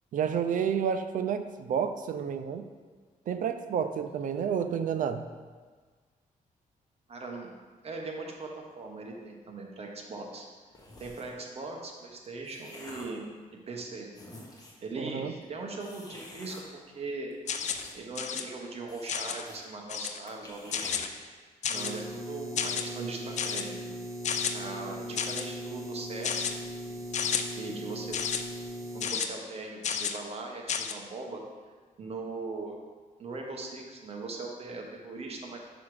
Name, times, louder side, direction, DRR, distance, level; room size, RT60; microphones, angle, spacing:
voice 1, 0.1-2.7 3.3-5.3 15.0-15.3, right 7 dB, 65° right, 9 dB, 0.5 m, -30 dB
voice 2, 7.1-7.5 7.8-10.4 11.0-13.2 13.7-14.1 14.5-16.6 16.9-17.3 17.6-24.0 24.5-26.6 26.8-27.0 27.5-28.2 28.9-31.4 32.0-32.8 33.2-35.6, right 3 dB, 45° right, 1 dB, 1.2 m, -40 dB
sound 1, 10.7-11.4 12.1-13.2 13.8-13.9 14.1-14.9 15.8-16.6 17.3-18.2 18.5-18.6 18.9-19.6 19.9-20.0 20.3-21.0, left 1 dB, 25° left, 1.3 m, -49 dB
sound 2, 17.5-17.9 18.2-18.4 19.1-19.4 19.9-20.2 20.7-21.1 21.6-22.0 22.6-22.8 23.4-23.6 24.2-24.5 25.2-25.5 26.2-26.5 27.1-27.4 28.1-28.4 29.0-29.3 29.8-30.2 30.7-30.9, left 7 dB, 55° left, 0.5 m, -31 dB
sound 3, 21.7-29.1, right 1 dB, 20° right, 0.6 m, -39 dB
5.8 x 5.7 x 4.9 m, 1.5 s
wide cardioid pair, 135°, 14 cm